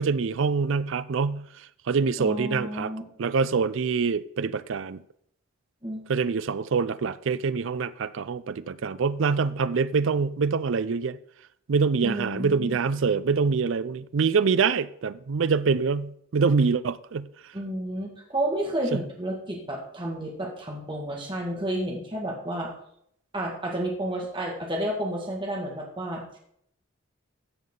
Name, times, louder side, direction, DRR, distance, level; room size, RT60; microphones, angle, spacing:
voice 1, 0.0-1.5 1.9-2.9 3.2-5.0 6.1-11.2 11.7-17.3 18.9-19.0, right 5 dB, 65° right, 0.4 m, -25 dB
voice 2, 2.2-3.0 5.8-6.1 12.0-12.8 17.5-22.7 23.3-26.4, right 1 dB, 25° right, 1.9 m, -31 dB
14.0 x 7.3 x 3.8 m
head